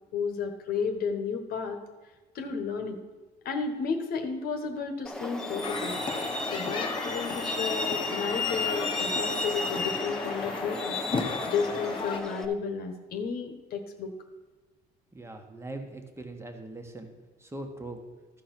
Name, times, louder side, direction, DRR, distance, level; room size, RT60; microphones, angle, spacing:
voice 1, 0.1-1.8 2.3-3.0 3.4-6.0 6.5-11.0 11.5-14.1, left 5 dB, 65° left, 6 dB, 1.2 m, -32 dB
Truck, 5.0-12.4, left 2 dB, 5° left, 0.9 m, -33 dB
sound 1, 5.6-12.2, left 4 dB, 30° left, 1.1 m, -35 dB
voice 2, 15.1-17.1 17.4-18.0, right 2 dB, 15° right, 4 dB, 1.4 m, -41 dB
13.5 x 4.6 x 6.0 m, 1.3 s
cardioid pair, 110°, 17 cm